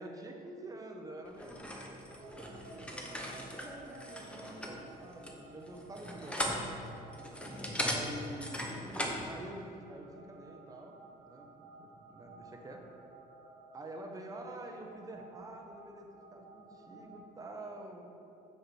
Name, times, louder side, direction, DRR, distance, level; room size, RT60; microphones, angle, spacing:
voice 1, 0.0-1.7 2.1-7.1 7.8-8.8 9.2-10.9 11.2-11.5 11.8-12.8 13.7-18.1, right 1 dB, 20° right, 2 dB, 0.9 m, -47 dB
sound 1, 1.4-9.3, equal, 5° left, 0.9 m, -39 dB
sound 2, 2.0-17.2, right 3 dB, 70° right, 0.8 m, -56 dB
6.3 x 5.7 x 4.6 m, 2.8 s
cardioid pair, 110°, 17 cm